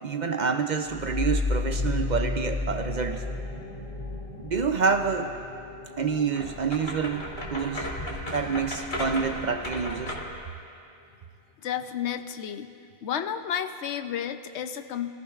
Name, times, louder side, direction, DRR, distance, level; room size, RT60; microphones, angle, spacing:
voice 1, 0.0-3.2 4.4-5.3 6.0-7.2 7.5-7.9 8.3-10.2, right 5 dB, 55° right, 6 dB, 0.6 m, -27 dB
sound 1, 0.8-10.2, left 3 dB, 70° left, 2.2 m, -34 dB
sound 2, 6.3-10.4, left 1 dB, 45° left, 1.9 m, -35 dB
voice 2, 11.6-12.7 13.0-15.1, left 9 dB, 85° left, 8 dB, 0.9 m, -31 dB
21.5 x 14.5 x 2.4 m, 2.4 s
omnidirectional pair, 1.1 m